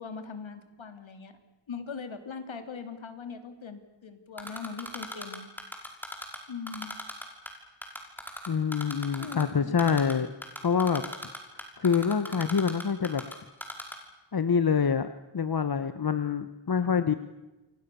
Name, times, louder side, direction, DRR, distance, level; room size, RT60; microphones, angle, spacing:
voice 1, 0.0-1.3 1.7-5.5 6.5-7.0 9.2-9.7, left 5 dB, 70° left, 8 dB, 3.2 m, -40 dB
Typing, 4.4-6.4 6.7-7.5 7.8-9.4 9.8-10.1 10.4-13.3 13.6-14.0, left 1 dB, 5° left, 5.7 m, -37 dB
voice 2, 8.5-10.3 10.6-11.0 11.8-13.2 14.3-15.1 15.3-17.1, left 6 dB, 50° left, 11 dB, 1.3 m, -26 dB
29.5 x 24.0 x 7.0 m, 1.1 s
wide cardioid pair, 105°, 48 cm